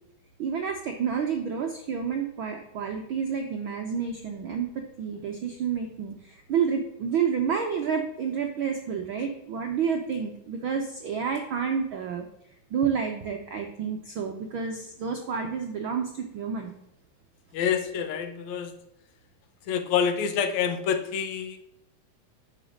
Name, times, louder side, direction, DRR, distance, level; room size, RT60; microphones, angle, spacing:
voice 1, 0.4-12.2 12.7-16.7, right 6 dB, 75° right, 3 dB, 1.2 m, -29 dB
voice 2, 17.5-18.7 19.7-21.6, left 7 dB, 75° left, 9 dB, 2.1 m, -27 dB
10.5 x 5.1 x 6.3 m, 0.84 s
omnidirectional pair, 3.4 m